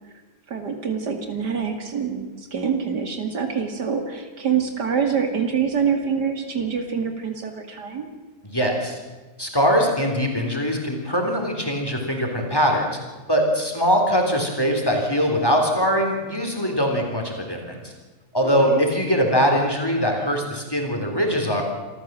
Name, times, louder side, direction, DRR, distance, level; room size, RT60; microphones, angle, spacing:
voice 1, 0.5-8.1 18.4-18.8, right 6 dB, 75° right, 5 dB, 2.8 m, -25 dB
voice 2, 8.4-9.0 9.4-13.0 13.3-17.9 18.3-21.6, equal, 15° left, 2 dB, 3.6 m, -22 dB
26.5 x 14.5 x 7.6 m, 1.3 s
omnidirectional pair, 1.8 m